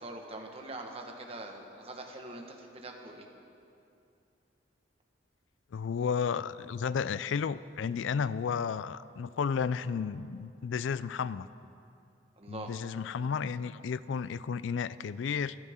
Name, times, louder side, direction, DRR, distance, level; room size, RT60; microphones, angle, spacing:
voice 1, 0.0-3.2 12.4-12.7, right 2 dB, 30° right, 2 dB, 1.4 m, -43 dB
voice 2, 5.7-11.5 12.5-15.6, left 6 dB, 75° left, 17 dB, 0.4 m, -32 dB
24.5 x 12.5 x 3.7 m, 2.6 s
head